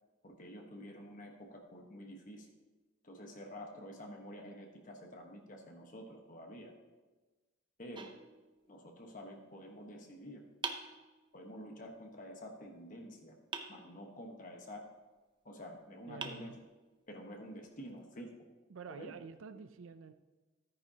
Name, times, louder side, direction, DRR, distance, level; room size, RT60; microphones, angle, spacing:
voice 1, 0.2-2.5 3.0-6.7 7.8-8.1 8.7-10.4 11.3-13.3 13.7-14.9 15.4-16.5 17.1-18.4 18.9-19.1, equal, 40° left, 2 dB, 1.2 m, -49 dB
sound 1, 8.0-9.0 10.6-11.6 13.5-14.4 15.6-15.7 16.2-17.2, right 4 dB, 25° right, 0.6 m, -46 dB
voice 2, 16.1-16.6 18.7-20.1, right 5 dB, 70° right, 10 dB, 0.5 m, -49 dB
13.5 x 9.6 x 2.9 m, 1.2 s
head